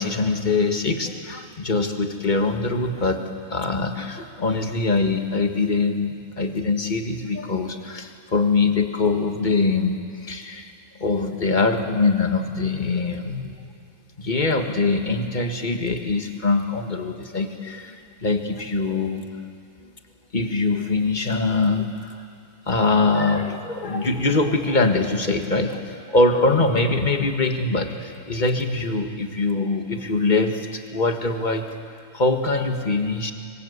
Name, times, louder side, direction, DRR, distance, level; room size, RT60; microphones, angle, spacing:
voice 1, 0.0-3.2 3.5-10.7 11.0-13.6 14.2-19.2 19.8-19.9 20.3-22.2 22.7-31.8 32.1-33.3, left 3 dB, 30° left, 5 dB, 1.8 m, -23 dB
25.5 x 25.5 x 8.3 m, 2.3 s
omnidirectional pair, 1.6 m